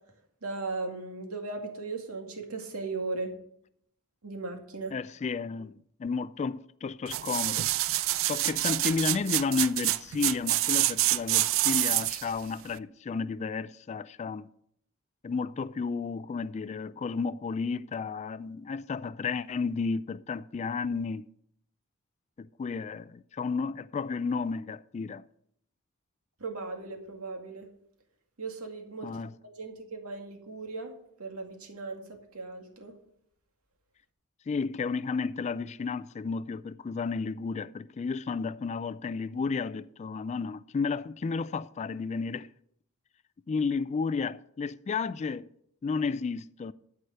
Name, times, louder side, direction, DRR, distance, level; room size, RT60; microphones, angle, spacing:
voice 1, 0.4-3.3 4.2-4.9 26.4-27.7 28.4-29.1 29.6-30.9 31.2-32.9, right 3 dB, 80° right, 2.2 m, -37 dB
voice 2, 4.9-7.7 8.2-14.5 15.2-21.3 22.4-25.2 29.0-29.3 34.5-42.5 43.5-45.5 45.8-46.7, left 4 dB, 30° left, 0.3 m, -32 dB
sound 1, 7.1-12.3 12.8-12.9, right 16 dB, 65° right, 0.4 m, -27 dB
13.0 x 4.9 x 7.8 m
head